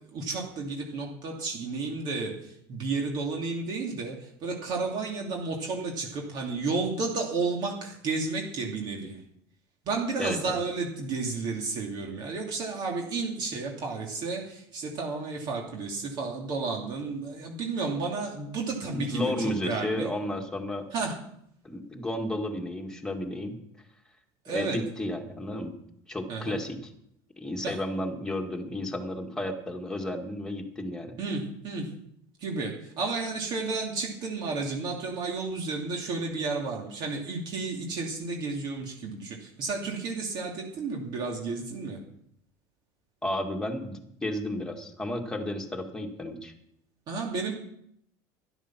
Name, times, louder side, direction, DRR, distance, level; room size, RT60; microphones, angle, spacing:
voice 1, 0.0-9.2 9.8-20.1 20.9-21.1 24.4-24.8 26.3-26.6 27.6-27.8 31.2-31.9 32.4-42.0 47.1-47.5, right 4 dB, 50° right, 0 dB, 2.6 m, -32 dB
voice 2, 10.2-10.6 18.9-20.9 21.6-23.6 24.5-25.7 26.1-26.9 27.4-31.2 43.2-46.5, left 1 dB, 5° left, 3 dB, 1.9 m, -32 dB
13.0 x 11.5 x 6.0 m, 0.71 s
cardioid pair, 140°, 9 cm